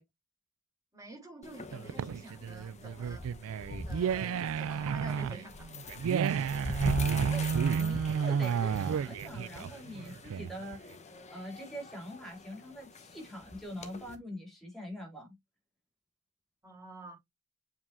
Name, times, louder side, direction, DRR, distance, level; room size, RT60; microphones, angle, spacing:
voice 1, 0.9-3.3 3.9-5.7 16.6-17.1, right 1 dB, 15° right, 3.5 m, -48 dB
sound 1, 1.4-14.2, left 2 dB, 30° left, 1.0 m, -43 dB
sound 2, 1.7-10.8, right 7 dB, 65° right, 0.3 m, -31 dB
voice 2, 7.1-7.5 7.8-15.4, equal, ahead, 3.9 m, -44 dB
7.4 x 4.8 x 2.6 m
head